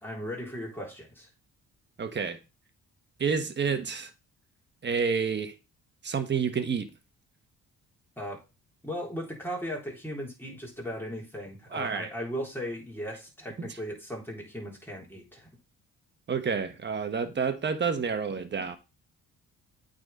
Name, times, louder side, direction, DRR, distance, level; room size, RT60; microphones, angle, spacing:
voice 1, 0.0-1.3 8.2-8.4 8.8-15.5, equal, 5° left, 3.6 m, -37 dB
voice 2, 2.0-2.4 3.2-4.1 4.8-5.5 6.0-6.9 11.7-12.1 16.3-18.8, right 6 dB, 35° right, 1.3 m, -29 dB
8.7 x 4.0 x 4.2 m
cardioid pair, 90°, 30 cm